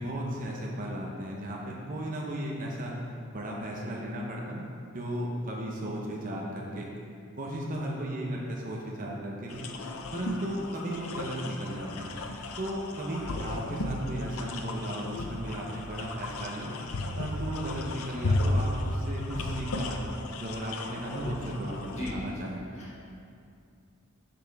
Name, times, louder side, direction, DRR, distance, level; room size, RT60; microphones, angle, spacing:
voice 1, 0.0-2.9 3.3-6.9 7.4-9.6 10.1-12.1 12.6-16.7 17.2-20.0 20.3-22.6, right 1 dB, 40° right, -2 dB, 0.9 m, -35 dB
sound 1, 9.5-22.1, left 2 dB, 80° left, 0.6 m, -34 dB
voice 2, 21.8-22.5 22.7-23.1, left 1 dB, 30° left, -7 dB, 2.1 m, -39 dB
10.5 x 6.0 x 3.5 m, 2.4 s
head